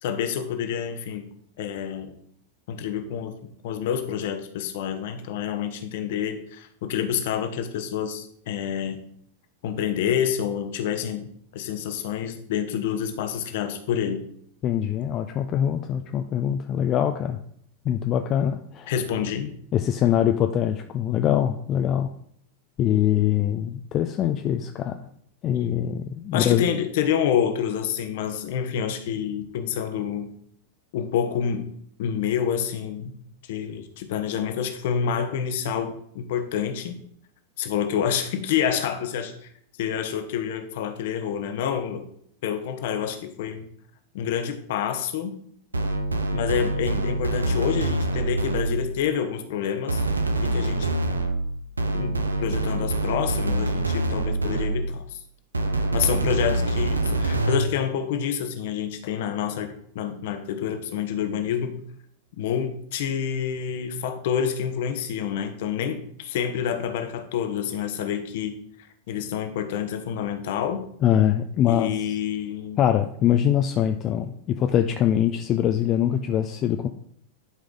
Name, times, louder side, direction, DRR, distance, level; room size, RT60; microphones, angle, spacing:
voice 1, 0.0-1.3 1.6-2.2 2.7-3.4 3.6-9.0 9.6-14.3 18.9-19.5 26.3-30.3 30.9-31.7 32.0-33.2 33.5-37.0 37.6-39.3 39.8-42.1 42.4-43.7 44.1-45.4 46.3-50.1 50.4-51.0 51.9-55.2 55.9-61.8 62.4-68.6 69.1-70.9 71.7-72.8, left 8 dB, 55° left, 7 dB, 1.1 m, -28 dB
voice 2, 14.6-17.4 17.8-18.9 19.7-22.1 22.8-25.0 25.4-26.6 71.0-71.9 72.8-76.9, left 10 dB, 35° left, 6 dB, 0.5 m, -23 dB
sound 1, 45.7-49.0 49.9-55.0 55.5-57.8, right 2 dB, 80° right, 0.7 m, -25 dB
11.0 x 4.9 x 3.9 m, 0.66 s
figure-of-eight pair, 90°, 0 cm